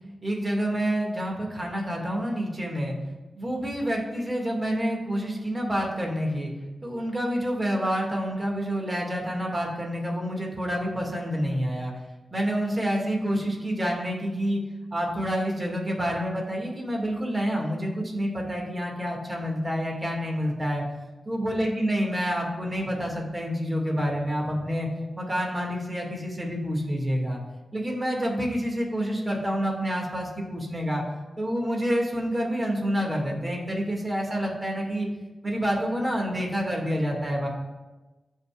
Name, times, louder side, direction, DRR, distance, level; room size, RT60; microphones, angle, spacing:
voice 1, 0.2-2.9 3.4-6.5 6.8-11.9 12.3-14.6 14.9-20.8 21.3-24.9 25.2-27.4 27.7-31.0 31.4-35.1 35.4-37.5, equal, 30° right, -1 dB, 2.3 m, -28 dB
15.0 x 5.5 x 2.5 m, 1.2 s
cardioid pair, 50°, 0 cm